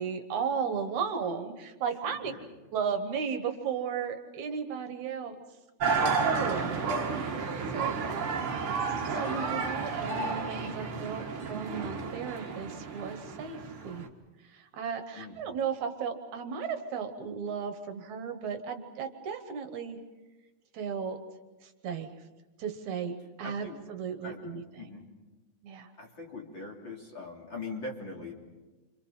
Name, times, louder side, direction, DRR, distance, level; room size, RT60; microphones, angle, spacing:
voice 1, 0.0-2.3 2.7-5.4 6.1-6.8 7.1-8.3 9.2-14.1 14.4-20.0 20.7-21.2 21.6-22.1 22.6-24.6 25.6-25.9, right 6 dB, 70° right, 7 dB, 2.6 m, -35 dB
voice 2, 2.0-2.5 6.4-7.1 15.1-15.4 23.4-23.8 24.2-25.1 26.0-28.3, left 3 dB, 35° left, 0 dB, 3.6 m, -42 dB
sound 1, 5.8-14.1, right 4 dB, 45° right, 2.3 m, -31 dB
28.5 x 26.0 x 5.7 m, 1.2 s
omnidirectional pair, 3.7 m